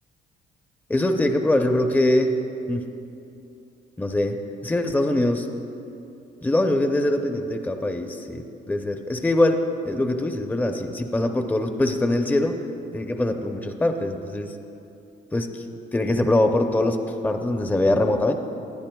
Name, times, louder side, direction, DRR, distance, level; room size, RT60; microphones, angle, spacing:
voice 1, 0.9-2.4 2.7-2.8 4.0-5.5 6.4-12.6 12.9-14.5 15.3-17.0 17.2-18.3, left 1 dB, 10° left, 5 dB, 0.6 m, -23 dB
18.5 x 9.8 x 2.3 m, 2.8 s
cardioid pair, 90°, 20 cm